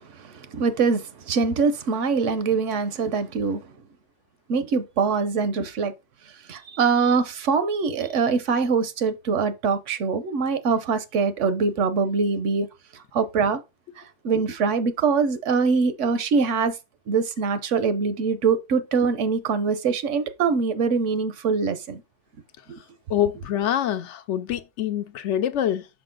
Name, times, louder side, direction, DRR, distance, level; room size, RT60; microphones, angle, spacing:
voice 1, 0.2-3.6 4.5-5.9 6.5-12.7 13.1-13.6 14.2-16.8 17.1-22.0 22.7-22.8, right 5 dB, 80° right, 1.1 m, -23 dB
voice 2, 23.1-25.9, left 10 dB, 75° left, 1.0 m, -25 dB
6.0 x 4.9 x 3.7 m
omnidirectional pair, 1.2 m